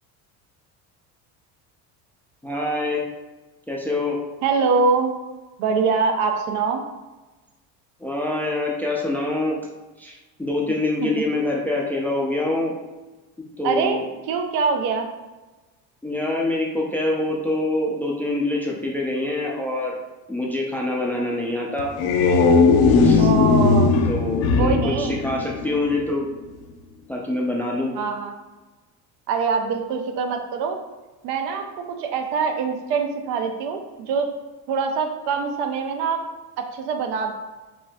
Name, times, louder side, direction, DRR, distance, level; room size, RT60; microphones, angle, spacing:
voice 1, 2.4-3.0 3.7-4.2 8.0-9.6 10.0-12.8 13.6-14.0 16.0-20.0 20.3-21.9 23.0-23.3 24.1-26.3 27.1-27.9, left 2 dB, 5° left, -1 dB, 0.3 m, -25 dB
voice 2, 4.4-5.1 5.6-6.8 13.6-14.0 14.3-15.1 23.2-23.9 24.6-25.2 27.9-28.3 29.3-30.8 31.2-34.3 34.7-36.2 36.7-37.3, right 5 dB, 75° right, 5 dB, 0.6 m, -23 dB
sound 1, 21.8-26.0, left 4 dB, 60° left, 0.5 m, -18 dB
4.5 x 2.6 x 2.2 m, 1.2 s
supercardioid pair, 105°, 42 cm